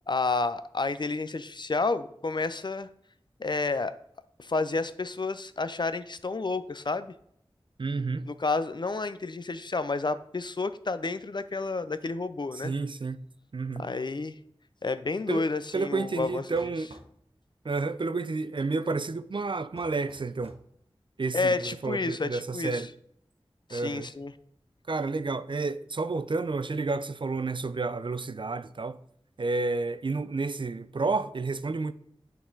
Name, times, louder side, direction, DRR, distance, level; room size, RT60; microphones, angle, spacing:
voice 1, 0.1-2.9 3.4-3.9 4.4-7.1 8.3-12.7 13.8-14.4 14.8-16.4 21.3-22.8 23.7-24.3, left 3 dB, 50° left, 0.4 m, -30 dB
voice 2, 7.8-8.3 12.5-13.2 13.5-13.9 15.3-15.5 15.7-16.9 17.6-20.6 21.2-22.9 23.7-24.1 24.9-29.0 29.4-31.9, right 3 dB, 55° right, 0.4 m, -30 dB
sound 1, 16.2-17.1 19.7-20.7, right 2 dB, 75° right, 0.8 m, -51 dB
8.5 x 4.0 x 3.9 m
wide cardioid pair, 45°, 10 cm